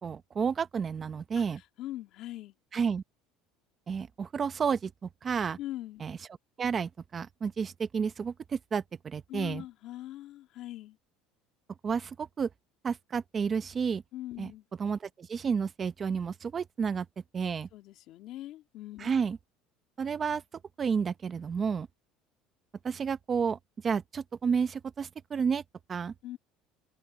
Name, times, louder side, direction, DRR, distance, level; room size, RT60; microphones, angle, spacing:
voice 1, 0.0-1.6 2.7-3.0 3.9-5.6 6.0-6.2 6.6-9.6 11.8-12.5 12.8-14.0 14.4-14.5 14.8-17.1 17.3-17.7 19.0-19.4 20.0-20.4 20.8-21.9 22.8-25.6 25.9-26.1, right 6 dB, 25° right, 0.9 m, -31 dB
voice 2, 1.8-2.5 5.6-6.0 9.3-11.0 14.1-14.6 17.7-19.1 26.2-26.4, left 14 dB, 55° left, 2.4 m, -41 dB
cardioid pair, 145°, 0 cm